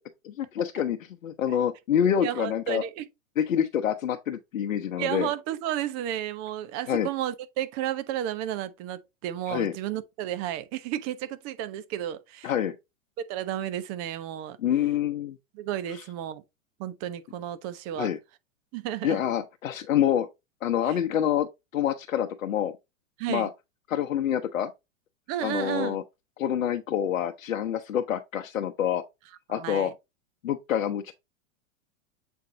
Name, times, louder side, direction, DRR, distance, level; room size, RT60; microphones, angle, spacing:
voice 1, 0.3-2.8 3.4-5.3 6.9-7.1 9.5-9.7 12.4-12.7 14.6-15.4 15.9-16.0 18.0-18.2 19.0-20.3 20.6-21.5 21.7-22.7 23.3-23.5 23.9-24.7 25.4-26.0 26.4-29.0 29.5-29.9 30.4-31.1, left 9 dB, 85° left, 0.8 m, -27 dB
voice 2, 2.2-3.1 5.0-12.5 13.3-14.6 15.5-16.4 16.8-18.1 18.7-19.2 20.9-21.0 23.2-23.5 25.3-26.0 29.5-29.9, right 12 dB, 40° right, 1.0 m, -32 dB
7.8 x 4.5 x 2.7 m
hypercardioid pair, 115°, 39 cm